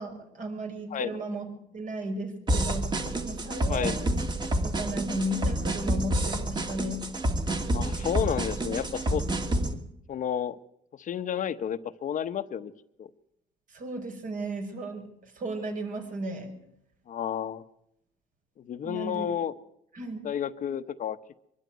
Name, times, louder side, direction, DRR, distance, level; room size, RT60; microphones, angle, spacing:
voice 1, 0.0-2.9 3.2-4.2 4.6-7.0 13.7-16.5 18.8-19.3 19.9-20.2, right 1 dB, 50° right, 4 dB, 5.7 m, -35 dB
sound 1, 2.5-9.7, right 1 dB, 25° right, 2.4 m, -28 dB
voice 2, 7.7-9.2 10.1-10.6 10.9-12.7 13.0-13.1 17.1-17.6 18.7-19.5 20.2-21.2, left 9 dB, 50° left, 10 dB, 1.0 m, -31 dB
23.5 x 12.5 x 9.2 m, 0.77 s
cardioid pair, 110°, 17 cm